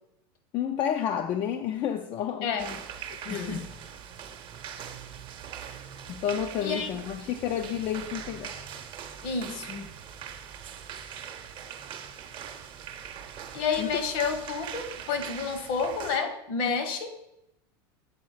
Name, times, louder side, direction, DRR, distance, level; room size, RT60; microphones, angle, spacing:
voice 1, 0.5-2.6 3.3-3.7 6.1-8.7 13.8-14.0, left 9 dB, 40° left, 6 dB, 0.5 m, -30 dB
voice 2, 2.4-2.8 3.3-3.7 6.6-6.9 9.2-9.9 13.5-17.2, left 5 dB, 55° left, 8 dB, 1.1 m, -30 dB
sound 1, 2.6-16.2, right 8 dB, 40° right, 0.8 m, -42 dB
7.3 x 3.8 x 4.8 m, 0.84 s
supercardioid pair, 120°, 13 cm